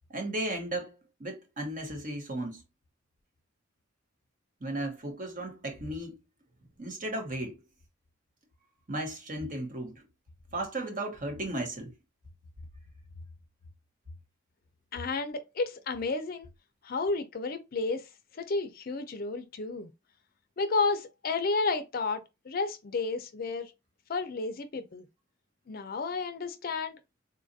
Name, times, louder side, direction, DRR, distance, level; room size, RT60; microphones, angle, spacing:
voice 1, 0.1-0.9 1.2-2.6 4.6-6.2 6.8-7.6 8.9-10.0 10.5-11.9, right 1 dB, 45° right, 1.0 m, -35 dB
voice 2, 14.9-16.5 16.8-18.0 18.3-19.9 20.6-23.7 24.1-25.0 25.7-27.0, left 3 dB, 50° left, 0.5 m, -31 dB
3.9 x 2.4 x 2.6 m
head